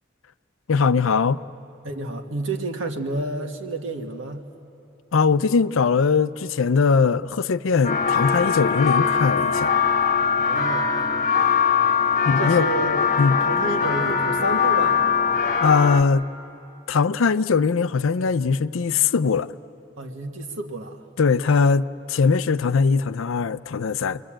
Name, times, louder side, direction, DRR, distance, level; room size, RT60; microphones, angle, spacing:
voice 1, 0.7-1.4 5.1-9.7 12.3-12.7 13.2-13.4 15.6-16.2 16.9-19.5 21.2-24.2, left 5 dB, 75° left, 0.5 m, -20 dB
voice 2, 1.8-4.5 10.4-11.0 12.4-13.0 13.4-15.1 20.0-21.1, right 2 dB, 70° right, 1.8 m, -30 dB
sound 1, 7.8-16.0, left 6 dB, 40° left, 1.3 m, -21 dB
29.0 x 22.5 x 8.9 m
head